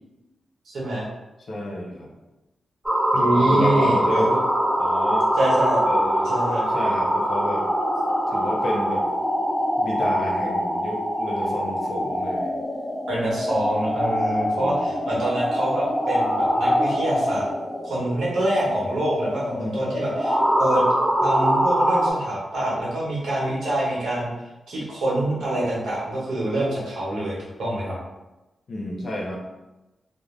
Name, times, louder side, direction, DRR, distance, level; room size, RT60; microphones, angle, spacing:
voice 1, 0.6-1.1 3.1-4.4 5.4-5.8 6.2-6.6 13.1-17.4 17.8-20.8 21.2-24.3 24.7-27.9, right 1 dB, 85° right, -6 dB, 1.0 m, -25 dB
voice 2, 1.4-2.1 3.3-4.3 4.8-5.3 5.9-6.3 6.7-7.7 8.3-9.0 9.8-12.5 14.4-14.9 19.5-19.8 28.7-29.4, left 1 dB, 65° left, -1 dB, 0.7 m, -30 dB
sound 1, 2.8-22.1, equal, 15° right, 0.8 m, -23 dB
2.5 x 2.1 x 3.2 m, 1.0 s
cardioid pair, 55°, 0 cm